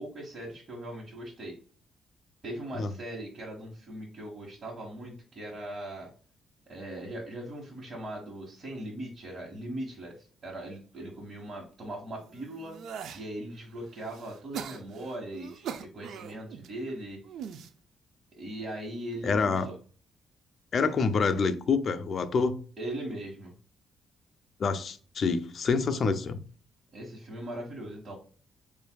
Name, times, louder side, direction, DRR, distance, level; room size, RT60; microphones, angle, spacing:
voice 1, 0.0-1.5 2.4-6.1 6.7-12.8 13.1-17.2 18.4-19.7 22.8-23.5 26.9-28.2, right 1 dB, 40° right, 1.4 m, -39 dB
sound 1, 12.2-13.3 13.8-16.7 17.2-17.7 18.5-18.9, right 8 dB, 75° right, 0.4 m, -42 dB
voice 2, 19.2-19.7 20.7-22.6 24.6-26.4, left 4 dB, 50° left, 0.5 m, -27 dB
6.9 x 2.6 x 2.3 m
cardioid pair, 90°, 0 cm